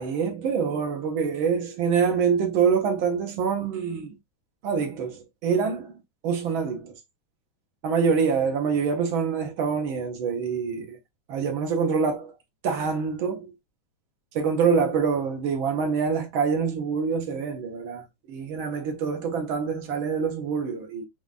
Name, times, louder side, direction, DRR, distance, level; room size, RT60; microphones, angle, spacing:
voice 1, 0.0-4.2 4.6-7.0 7.8-11.0 11.3-12.3 12.6-13.5 14.3-21.1, right 6 dB, 60° right, 1.3 m, -25 dB
7.0 x 2.5 x 2.4 m
omnidirectional pair, 3.5 m